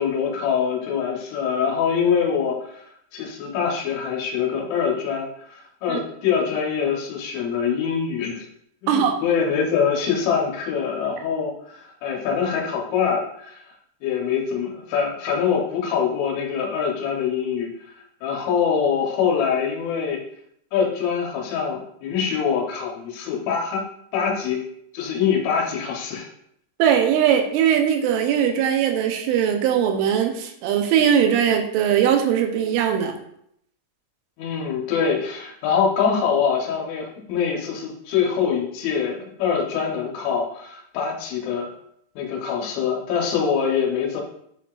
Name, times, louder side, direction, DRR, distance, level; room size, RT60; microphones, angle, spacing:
voice 1, 0.0-8.5 8.8-13.8 14.0-17.9 18.2-20.2 20.7-23.8 24.1-24.6 24.9-26.3 34.4-41.7 42.2-44.2, left 7 dB, 90° left, -2 dB, 3.6 m, -24 dB
voice 2, 8.9-9.2 26.8-33.2, right 8 dB, 85° right, 4 dB, 3.3 m, -20 dB
10.5 x 4.7 x 2.4 m, 0.72 s
omnidirectional pair, 5.4 m